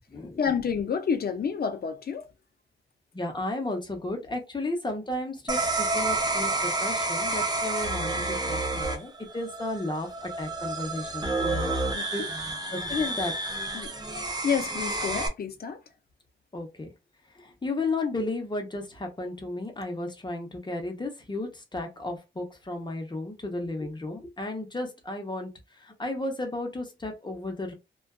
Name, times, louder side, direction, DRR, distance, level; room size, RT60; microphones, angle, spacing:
voice 1, 0.4-2.3 11.9-12.3 13.7-15.8, left 6 dB, 50° left, 0.5 m, -29 dB
voice 2, 3.1-11.7 12.1-12.2 12.7-13.3 16.5-16.9 17.4-25.5 25.8-27.7, left 2 dB, 20° left, 0.8 m, -33 dB
sound 1, 5.5-15.3, right 2 dB, 20° right, 0.6 m, -29 dB
2.4 x 2.3 x 2.3 m
wide cardioid pair, 115°, 20 cm